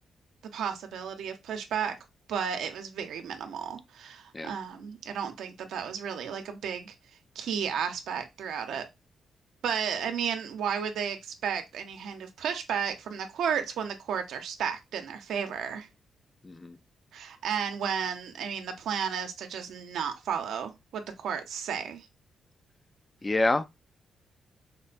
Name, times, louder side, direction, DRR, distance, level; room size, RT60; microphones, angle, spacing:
voice 1, 0.5-2.0 2.3-6.9 7.3-8.9 9.6-15.9 17.1-22.1, right 7 dB, 90° right, 0.7 m, -33 dB
voice 2, 16.4-16.8 23.2-23.7, left 2 dB, 20° left, 0.3 m, -27 dB
4.5 x 2.2 x 2.4 m
cardioid pair, 115°, 0 cm